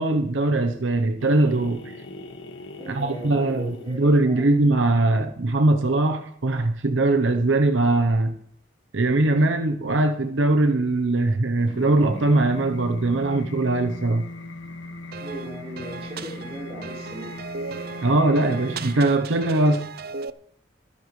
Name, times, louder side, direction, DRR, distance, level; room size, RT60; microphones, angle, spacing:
voice 1, 0.0-1.8 2.9-8.4 8.9-14.2 18.0-19.9, right 2 dB, 85° right, 0.9 m, -21 dB
sound 1, 1.2-4.3 11.6-19.1, left 1 dB, 90° left, 1.7 m, -39 dB
voice 2, 2.8-4.5 15.2-17.3, right 1 dB, 35° right, 4.9 m, -37 dB
sound 2, 15.1-20.3, right 4 dB, 55° right, 0.5 m, -37 dB
23.5 x 10.5 x 3.2 m
head